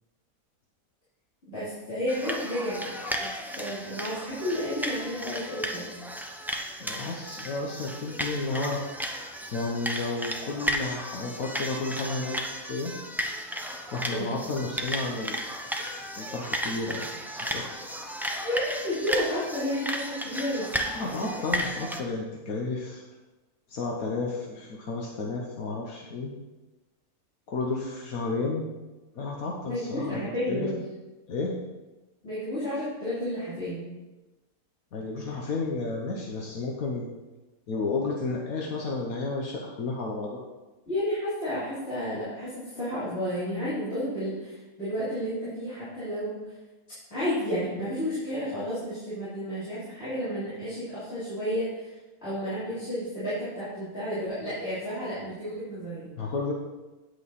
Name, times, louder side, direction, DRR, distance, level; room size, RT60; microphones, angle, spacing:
voice 1, 1.5-2.9 3.2-3.3 3.6-5.9 14.0-14.3 18.4-20.7 29.7-30.8 32.2-33.9 40.9-46.4 47.1-51.9 52.2-56.3, equal, 45° left, -14 dB, 3.7 m, -31 dB
sound 1, 2.1-22.0, equal, 5° right, 0.4 m, -34 dB
voice 2, 6.8-8.8 9.5-12.4 12.7-12.9 13.9-15.4 16.2-17.7 20.9-23.0 23.7-26.3 27.5-28.7 29.1-30.7 31.3-31.5 34.9-37.1 37.7-40.4 56.1-56.5, left 3 dB, 75° left, -1 dB, 1.5 m, -32 dB
9.2 x 8.3 x 4.2 m, 1.1 s
omnidirectional pair, 1.5 m